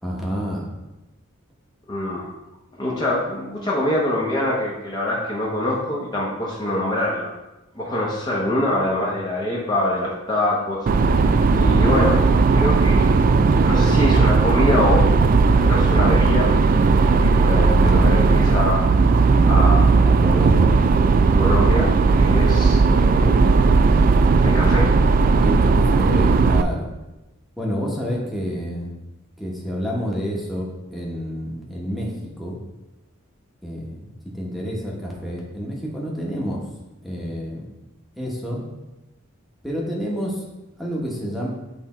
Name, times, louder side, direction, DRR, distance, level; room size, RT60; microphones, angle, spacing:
voice 1, 0.0-0.7 17.7-18.1 20.0-20.7 25.4-26.9 27.6-28.9 29.4-32.6 33.6-36.7 37.0-37.7 38.2-38.6 39.6-40.4 40.8-41.5, equal, ahead, -3 dB, 1.2 m, -28 dB
voice 2, 1.9-2.2 2.8-7.3 7.7-10.9 11.2-12.3 12.5-13.2 13.6-15.1 15.5-16.5 17.2-18.8 19.4-19.9 21.4-21.9 22.2-24.0 24.4-25.0, left 1 dB, 20° left, -5 dB, 0.9 m, -24 dB
sound 1, 10.9-26.6, right 4 dB, 40° right, 0.3 m, -16 dB
8.1 x 3.4 x 4.3 m, 0.99 s
head